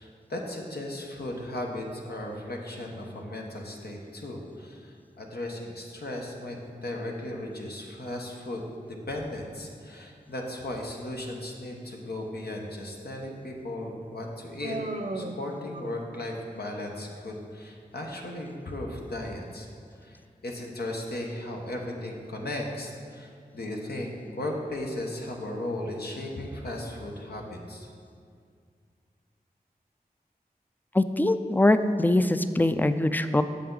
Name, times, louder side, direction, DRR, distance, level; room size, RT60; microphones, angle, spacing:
voice 1, 0.0-14.8 15.1-19.7 20.0-27.9, left 1 dB, 80° left, 0 dB, 1.1 m, -36 dB
Human voice, 14.6-16.3, right 2 dB, 50° right, 0.7 m, -36 dB
voice 2, 30.9-33.4, left 1 dB, 10° left, 10 dB, 0.4 m, -22 dB
8.4 x 6.8 x 3.9 m, 2.2 s
wide cardioid pair, 40°, 16 cm